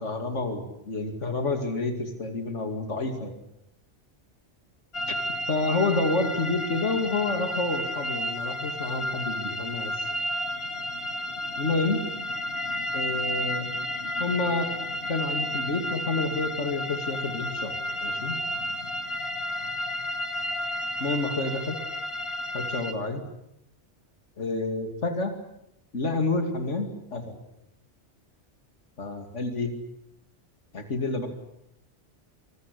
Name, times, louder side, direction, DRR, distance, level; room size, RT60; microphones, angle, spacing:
voice 1, 0.0-3.3 5.1-5.2 5.5-10.1 11.6-12.0 12.9-13.7 14.2-14.7 15.1-17.7 18.0-18.4 21.0-21.8 22.5-23.2 24.4-25.3 25.9-27.4 29.0-29.7 30.7-31.3, left 3 dB, 80° left, 5 dB, 2.8 m, -29 dB
sound 1, 4.9-22.9, equal, 55° left, 2.1 m, -32 dB
25.5 x 22.0 x 8.4 m, 0.81 s
omnidirectional pair, 1.2 m